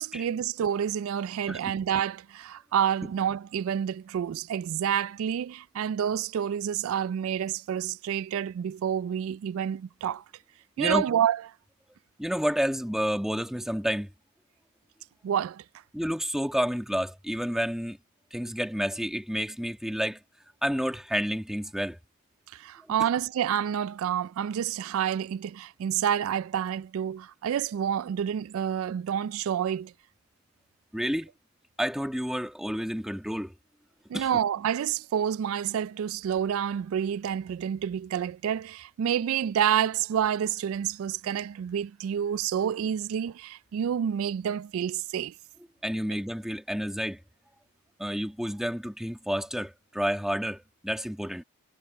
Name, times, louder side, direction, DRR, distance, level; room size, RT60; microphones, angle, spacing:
voice 1, 0.0-10.2 10.8-11.4 15.2-15.6 22.5-29.9 34.1-45.3, right 9 dB, 65° right, 0.3 m, -28 dB
voice 2, 12.2-14.1 15.9-18.0 18.3-20.2 20.6-22.0 23.0-23.1 30.9-31.3 31.8-33.5 34.1-34.3 45.8-47.2 48.0-51.4, equal, ahead, 1.9 m, -30 dB
head